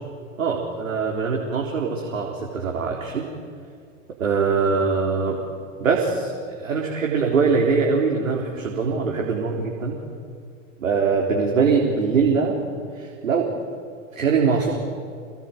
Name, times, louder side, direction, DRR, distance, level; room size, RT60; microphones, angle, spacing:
voice 1, 0.4-3.2 4.2-5.4 5.8-10.0 10.8-12.6 13.0-13.5 14.1-14.8, right 5 dB, 80° right, 0 dB, 3.9 m, -22 dB
26.5 x 20.0 x 9.3 m, 2.2 s
hypercardioid pair, 105°, 40 cm